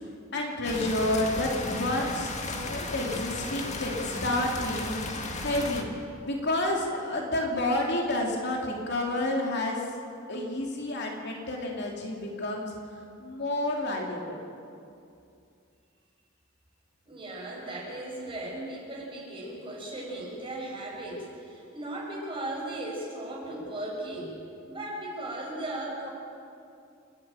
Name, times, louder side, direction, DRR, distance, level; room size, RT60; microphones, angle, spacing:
voice 1, 0.3-5.9 6.2-9.8 10.3-12.7 13.2-14.4, left 1 dB, 60° left, 0 dB, 2.8 m, -30 dB
sound 1, 0.6-5.8, left 2 dB, 35° left, 1.9 m, -35 dB
voice 2, 17.1-24.4 24.7-26.1, right 1 dB, 25° right, -3 dB, 6.0 m, -37 dB
29.0 x 10.0 x 9.1 m, 2.5 s
head